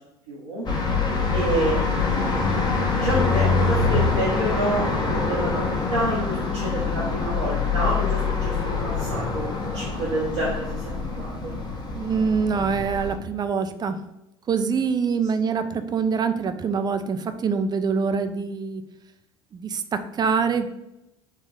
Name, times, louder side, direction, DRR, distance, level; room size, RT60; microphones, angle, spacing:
voice 1, 0.3-0.7 1.3-2.2 2.9-10.8 11.2-11.5, right 1 dB, 85° right, -8 dB, 1.1 m, -28 dB
sound 1, 0.7-13.2, left 4 dB, 30° left, 1.0 m, -25 dB
voice 2, 11.9-14.0 14.5-18.8 19.5-20.7, right 5 dB, 30° right, 9 dB, 0.4 m, -25 dB
4.3 x 2.3 x 3.5 m, 0.90 s
hypercardioid pair, 65°, 14 cm